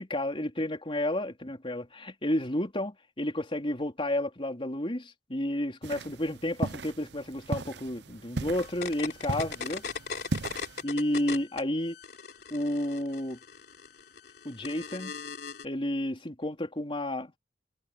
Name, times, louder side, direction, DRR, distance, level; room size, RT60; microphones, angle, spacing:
voice 1, 0.0-9.8 10.8-12.0 12.5-13.4 14.4-15.1 15.6-17.4, left 1 dB, 30° left, 3.9 m, -31 dB
sound 1, 5.8-10.8, right 2 dB, 70° right, 0.9 m, -37 dB
sound 2, 8.6-11.6 11.9-15.7, left 5 dB, 65° left, 3.4 m, -39 dB
head